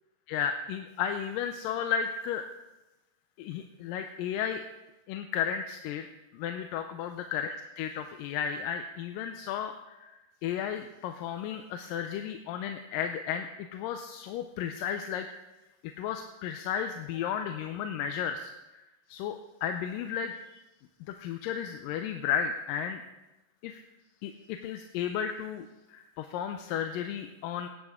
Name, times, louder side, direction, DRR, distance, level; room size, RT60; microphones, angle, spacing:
voice 1, 0.3-2.4 3.4-4.6 5.1-6.0 6.3-15.3 15.8-18.8 19.1-20.6 21.1-23.0 23.6-23.8 24.2-27.7, left 8 dB, 90° left, 6 dB, 2.3 m, -34 dB
16.5 x 10.5 x 3.6 m, 1.0 s
omnidirectional pair, 3.9 m